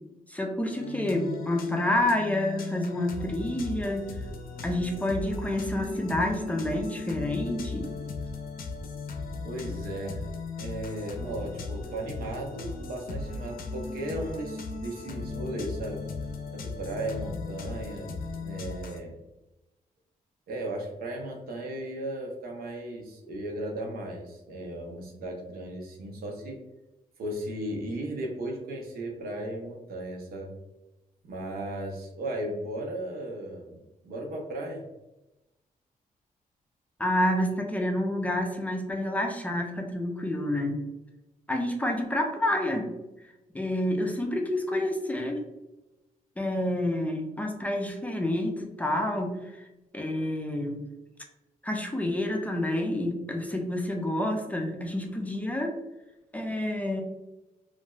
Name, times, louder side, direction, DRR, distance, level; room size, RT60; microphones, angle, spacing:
voice 1, 0.3-4.1 4.6-7.9 37.0-40.8 41.5-42.9 43.5-45.4 46.4-49.6 49.9-50.8 51.6-55.7 56.3-57.0, left 1 dB, 10° left, 2 dB, 0.4 m, -28 dB
sound 1, 0.7-19.0, left 3 dB, 75° left, 0.5 m, -37 dB
voice 2, 9.4-10.2 10.6-16.0 16.5-19.1 20.5-26.6 27.2-30.5 31.2-33.8 34.0-34.8, right 1 dB, 90° right, 0 dB, 0.7 m, -36 dB
3.0 x 2.5 x 2.3 m, 0.99 s
cardioid pair, 110°, 15 cm